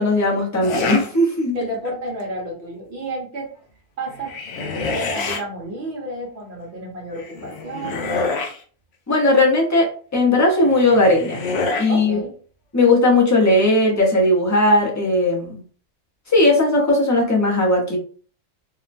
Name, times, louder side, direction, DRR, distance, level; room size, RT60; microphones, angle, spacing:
voice 1, 0.0-1.5 9.1-11.4 11.8-12.2 12.7-15.6 16.3-18.0, left 2 dB, 15° left, -2 dB, 0.6 m, -17 dB
sound 1, 0.6-1.1 1.6-2.1 4.1-5.4 7.1-8.6 10.6-11.9, left 3 dB, 65° left, 0.8 m, -27 dB
voice 2, 1.5-3.5 4.0-8.2 11.9-12.3, right 1 dB, 55° right, -2 dB, 1.0 m, -31 dB
2.9 x 2.1 x 2.5 m, 0.42 s
omnidirectional pair, 1.4 m